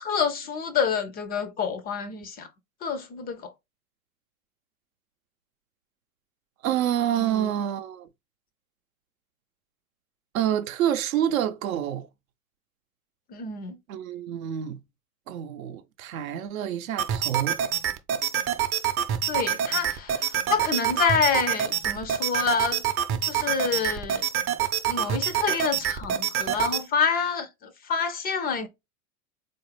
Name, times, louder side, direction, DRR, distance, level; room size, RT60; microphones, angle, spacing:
voice 1, 0.0-2.5 2.8-3.5 7.2-7.5 13.3-13.8 19.3-22.8 23.2-24.3 24.9-28.7, left 6 dB, 25° left, 0.4 m, -28 dB
voice 2, 6.6-8.1 10.3-12.1 13.9-14.8 15.3-17.6, right 10 dB, 70° right, 0.6 m, -27 dB
sound 1, 17.0-26.8, right 9 dB, 30° right, 0.6 m, -27 dB
4.0 x 2.5 x 3.1 m
hypercardioid pair, 90°, 43 cm